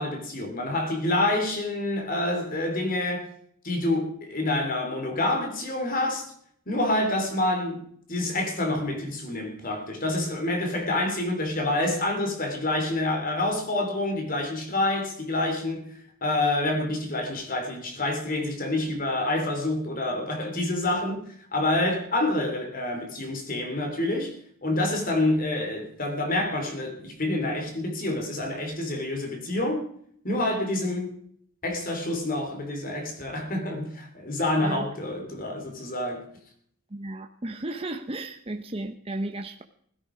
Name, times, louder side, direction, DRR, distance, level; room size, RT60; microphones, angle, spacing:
voice 1, 0.0-3.3 3.6-6.3 6.7-15.9 16.2-21.2 21.5-24.3 24.6-29.8 30.2-31.1 31.6-36.3, left 2 dB, 40° left, 3.1 m, -27 dB
voice 2, 34.6-34.9 36.9-39.6, right 2 dB, 25° right, 0.8 m, -34 dB
16.5 x 14.0 x 5.0 m
head